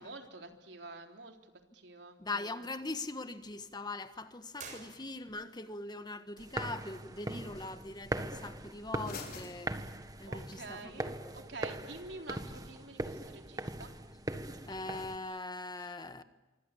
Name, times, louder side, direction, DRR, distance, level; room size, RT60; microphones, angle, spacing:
voice 1, 0.0-2.2 10.3-13.9, right 3 dB, 70° right, 3.8 m, -48 dB
voice 2, 2.2-9.7 10.2-11.1 14.7-16.2, left 2 dB, 25° left, 1.5 m, -41 dB
sound 1, 2.6-10.6, left 4 dB, 55° left, 5.7 m, -54 dB
sound 2, 4.5-5.6, right 5 dB, 45° right, 6.9 m, -49 dB
sound 3, 6.4-15.2, right 1 dB, 20° right, 1.7 m, -41 dB
26.0 x 25.0 x 8.6 m
head